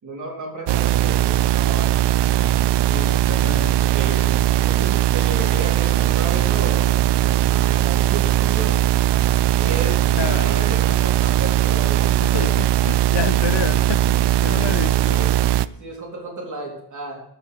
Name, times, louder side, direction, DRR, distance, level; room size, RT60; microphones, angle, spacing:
voice 1, 0.0-2.5 3.7-8.8 9.6-12.5 15.8-17.2, right 2 dB, 45° right, 3.9 m, -33 dB
sound 1, 0.7-15.7, right 13 dB, 75° right, 0.5 m, -19 dB
voice 2, 2.9-3.9 10.1-10.5 12.2-15.2, left 10 dB, 80° left, 0.9 m, -30 dB
14.0 x 6.2 x 6.7 m
wide cardioid pair, 165°, 42 cm